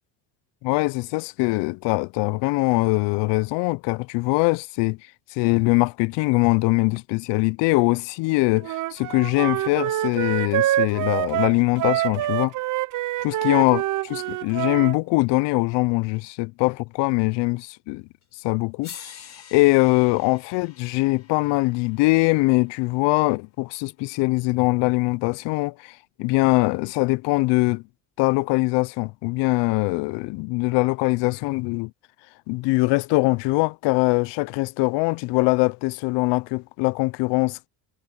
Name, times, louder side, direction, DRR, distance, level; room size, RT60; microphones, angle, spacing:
voice 1, 0.6-5.0 5.3-12.5 13.2-18.0 18.4-19.0 19.5-27.8 28.2-31.9 32.5-37.7, left 25 dB, 70° left, 0.6 m, -22 dB
Wind instrument woodwind instrument, 8.6-15.0, right 14 dB, 40° right, 0.7 m, -26 dB
sound 1, 18.2-18.3 18.8-23.0 24.4-24.5, left 8 dB, 35° left, 4.2 m, -46 dB
cardioid pair, 125°, 45 cm